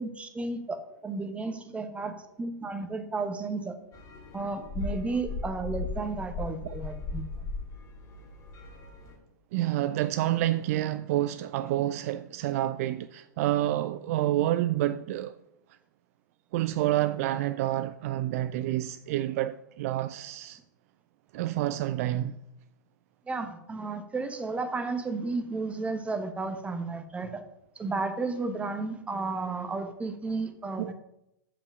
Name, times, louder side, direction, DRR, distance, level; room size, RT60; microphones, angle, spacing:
voice 1, 0.0-3.7 4.3-7.3 23.3-27.4 27.8-30.9, right 3 dB, 10° right, 1.0 m, -33 dB
sound 1, 3.9-9.2, left 3 dB, 35° left, 2.7 m, -37 dB
voice 2, 9.5-15.4 16.5-20.6 21.3-22.4 30.8-30.9, right 14 dB, 50° right, 0.4 m, -28 dB
7.2 x 5.5 x 6.1 m
figure-of-eight pair, 100°, 10 cm